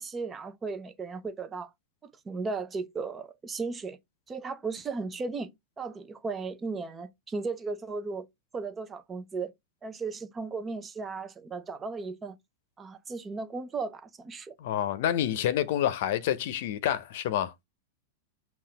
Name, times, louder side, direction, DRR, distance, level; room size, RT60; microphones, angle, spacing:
voice 1, 0.0-1.7 2.0-4.0 4.3-5.5 5.8-8.3 8.5-9.5 9.8-12.4 12.8-14.5, right 4 dB, 20° right, 0.5 m, -36 dB
voice 2, 14.6-17.5, left 11 dB, 65° left, 0.6 m, -28 dB
5.7 x 2.4 x 3.3 m
hypercardioid pair, 115°, 0 cm